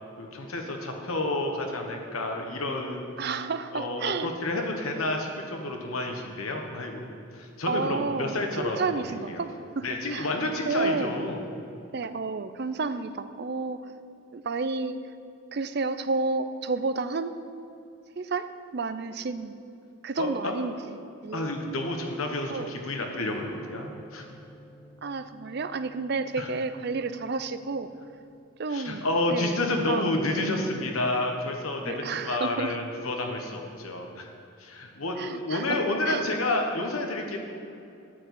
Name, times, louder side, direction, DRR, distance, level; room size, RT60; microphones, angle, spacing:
voice 1, 0.2-3.4 3.7-7.0 7.3-9.5 9.8-11.4 20.2-20.5 21.3-24.3 26.4-26.5 28.7-34.3 34.6-37.4, left 2 dB, 80° left, 2 dB, 1.2 m, -30 dB
voice 2, 3.2-4.3 7.7-9.9 10.1-10.3 10.7-11.1 11.9-13.8 14.3-15.0 15.5-17.3 18.2-19.6 20.0-20.9 21.2-21.5 22.5-22.7 25.0-27.9 28.6-29.0 29.3-30.5 31.9-32.7 35.2-35.8 36.1-36.3, right 4 dB, 50° right, 11 dB, 0.5 m, -31 dB
sound 1, 23.2-28.4, equal, 5° right, 1.5 m, -50 dB
13.0 x 4.8 x 8.3 m, 2.7 s
head